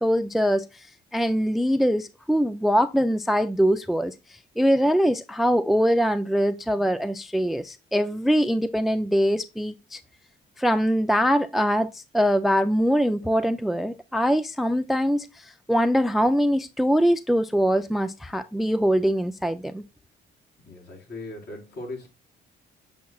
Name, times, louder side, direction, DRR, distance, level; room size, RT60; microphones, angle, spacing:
voice 1, 0.0-0.9 1.1-4.1 4.6-10.0 10.6-19.8, equal, ahead, 0.4 m, -23 dB
voice 2, 20.7-22.1, left 2 dB, 55° left, 4.1 m, -38 dB
7.1 x 6.2 x 2.3 m
cardioid pair, 90°, 20 cm